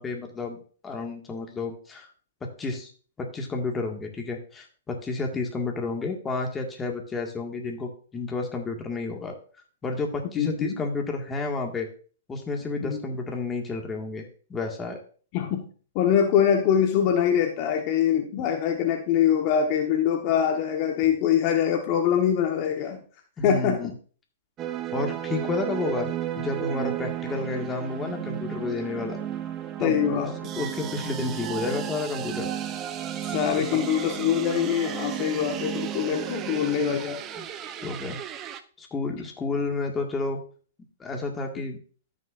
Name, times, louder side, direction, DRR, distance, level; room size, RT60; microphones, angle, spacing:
voice 1, 0.0-2.1 2.4-2.9 3.2-9.4 9.8-11.9 12.3-15.0 23.4-23.9 24.9-26.1 26.4-29.2 29.8-30.3 30.6-32.5 33.6-33.8 37.4-37.5 37.8-38.2 38.8-40.4 41.0-41.8, left 3 dB, 15° left, 1 dB, 1.8 m, -31 dB
voice 2, 10.4-10.8 12.8-13.0 15.3-15.7 15.9-23.0 23.4-23.8 29.8-30.5 33.3-37.2, left 8 dB, 40° left, 3 dB, 1.2 m, -24 dB
sound 1, 24.6-38.6, right 11 dB, 30° right, 0.7 m, -33 dB
14.5 x 6.4 x 2.5 m, 0.41 s
hypercardioid pair, 130°, 0 cm